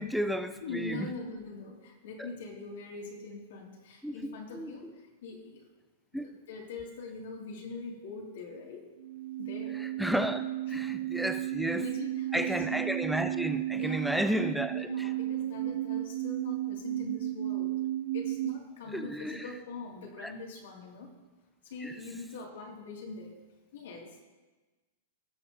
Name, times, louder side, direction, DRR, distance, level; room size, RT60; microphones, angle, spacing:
voice 1, 0.0-1.1 4.0-4.9 6.1-6.3 10.0-11.8 12.3-15.1 18.9-19.5 20.2-20.3 21.8-21.9, equal, ahead, 9 dB, 0.4 m, -33 dB
voice 2, 0.6-5.7 6.1-8.9 9.4-9.8 10.7-11.0 11.7-12.8 13.7-14.3 14.7-17.8 18.1-21.1 21.6-23.4 23.7-24.2, left 3 dB, 70° left, -1 dB, 2.3 m, -43 dB
sound 1, 9.0-18.6, right 14 dB, 85° right, 0.4 m, -33 dB
18.0 x 7.2 x 2.8 m, 1.2 s
supercardioid pair, 170°, 0 cm